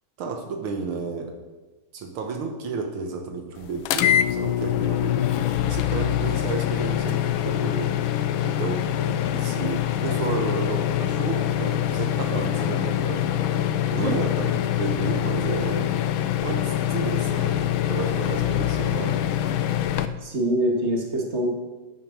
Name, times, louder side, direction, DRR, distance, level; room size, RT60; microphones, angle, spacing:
voice 1, 0.2-1.4 1.9-5.3 5.6-7.9 8.4-13.3 14.0-15.9 16.4-19.2, right 4 dB, 80° right, 3 dB, 2.0 m, -32 dB
sound 1, 3.8-20.1, left 11 dB, 75° left, 1.4 m, -24 dB
voice 2, 13.9-14.3 20.2-21.5, right 1 dB, 30° right, -1 dB, 2.3 m, -25 dB
10.5 x 9.6 x 6.2 m, 1.2 s
omnidirectional pair, 2.3 m